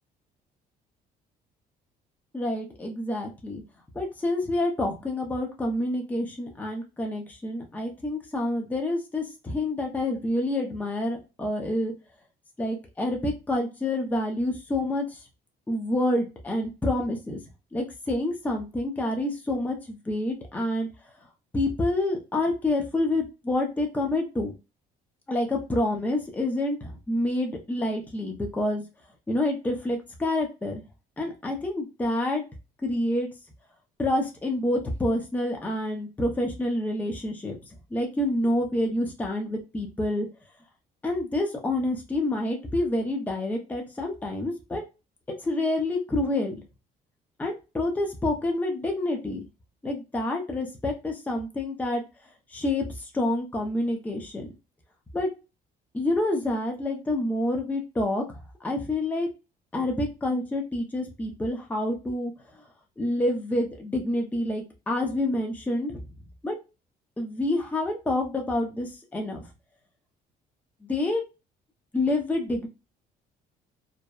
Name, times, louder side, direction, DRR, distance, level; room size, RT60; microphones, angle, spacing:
voice 1, 2.3-3.6 3.9-11.9 12.6-15.2 15.7-17.4 17.7-20.9 21.5-24.5 25.3-28.8 29.3-30.8 31.2-32.4 32.8-33.3 34.0-37.6 37.9-40.3 41.0-44.8 45.4-46.5 47.4-49.4 49.8-52.0 52.5-54.5 55.1-55.3 55.9-59.3 59.7-62.3 63.0-66.0 66.4-66.5 67.2-69.4 70.9-71.2 71.9-72.7, left 1 dB, 10° left, 1 dB, 0.6 m, -28 dB
2.6 x 2.1 x 2.3 m, 0.28 s
cardioid pair, 110°, 17 cm